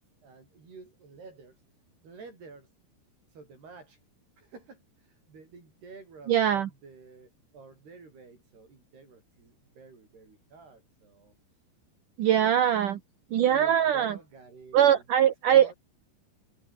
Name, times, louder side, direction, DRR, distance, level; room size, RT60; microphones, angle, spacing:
voice 1, 0.0-1.6 2.0-2.7 3.3-4.0 4.4-11.4 13.5-15.0 15.5-15.7, right 4 dB, 85° right, 10.0 m, -50 dB
voice 2, 6.3-6.7 12.2-13.0 13.3-14.2 14.7-15.7, right 10 dB, 60° right, 2.7 m, -22 dB
omnidirectional pair, 4.5 m